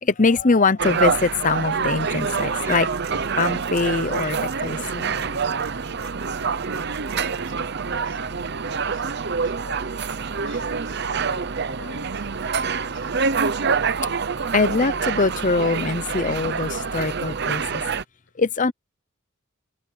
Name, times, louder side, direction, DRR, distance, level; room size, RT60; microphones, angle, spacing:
voice 1, 0.0-2.9 3.4-5.2 14.5-17.8 18.4-18.7, left 3 dB, 35° left, 0.7 m, -22 dB
sound 1, 0.8-18.0, right 5 dB, 50° right, 0.8 m, -26 dB
sound 2, 2.2-7.5, right 5 dB, 80° right, 2.8 m, -44 dB
voice 2, 6.6-9.9 10.4-13.1, left 3 dB, 65° left, 6.5 m, -48 dB
head